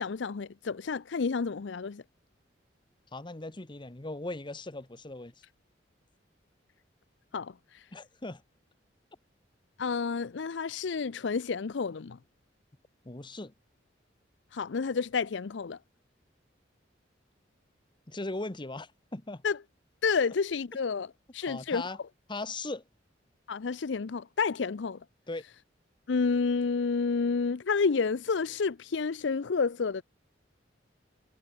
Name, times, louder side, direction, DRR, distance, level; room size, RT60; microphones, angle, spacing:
voice 1, 0.0-2.0 7.3-7.9 9.8-12.2 14.5-15.8 19.4-19.6 20.0-21.8 23.5-25.0 26.1-30.0, left 5 dB, 70° left, 0.5 m, -30 dB
voice 2, 3.1-5.3 7.9-8.4 13.0-13.5 18.1-19.4 21.4-22.0 22.3-22.8 25.3-25.4, left 2 dB, 25° left, 1.1 m, -38 dB
head